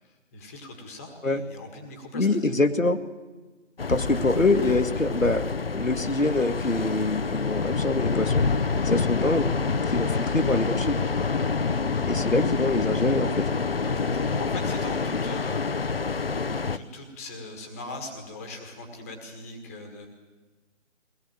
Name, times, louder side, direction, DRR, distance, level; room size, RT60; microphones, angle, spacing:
voice 1, 0.0-2.3 10.0-10.4 13.8-15.6 16.7-20.1, left 2 dB, 10° left, 4 dB, 1.7 m, -41 dB
voice 2, 2.1-3.0 3.9-8.5 8.8-9.5 9.9-11.0 12.1-13.4, left 2 dB, 90° left, 8 dB, 1.9 m, -24 dB
sound 1, 3.8-16.8, left 4 dB, 50° left, 0.8 m, -27 dB
22.0 x 18.0 x 8.9 m, 1.3 s
figure-of-eight pair, 160°, 38 cm